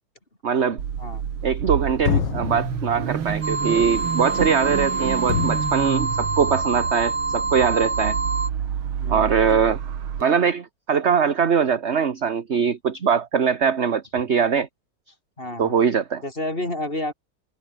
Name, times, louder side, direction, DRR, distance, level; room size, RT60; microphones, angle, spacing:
voice 1, 0.4-0.8 1.4-8.2 9.1-9.8 10.2-14.7 15.6-16.2, right 6 dB, 35° right, 1.4 m, -22 dB
sound 1, 0.7-1.7 2.1-6.9, left 9 dB, 60° left, 1.9 m, -30 dB
Car / Idling / Accelerating revving vroom, 0.8-10.2, right 8 dB, 90° right, 2.5 m, -29 dB
sound 2, 3.4-8.5, right 3 dB, 55° right, 5.7 m, -26 dB
voice 2, 9.0-9.7 15.4-15.8 16.2-17.1, left 1 dB, 25° left, 5.8 m, -30 dB
omnidirectional pair, 2.2 m